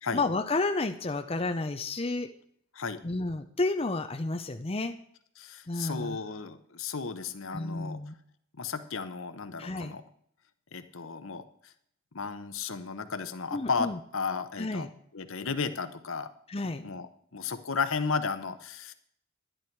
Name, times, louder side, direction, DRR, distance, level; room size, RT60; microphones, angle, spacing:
voice 1, 0.1-2.3 3.0-4.9 5.7-6.2 7.5-8.1 9.6-10.0 13.5-14.0 14.6-14.9 16.5-16.9, left 2 dB, 25° left, 6 dB, 0.6 m, -31 dB
voice 2, 5.4-8.0 8.6-10.0 10.7-11.7 12.1-14.9 15.1-16.3 16.6-18.9, left 5 dB, 70° left, 10 dB, 1.0 m, -34 dB
11.5 x 10.5 x 4.6 m, 0.67 s
head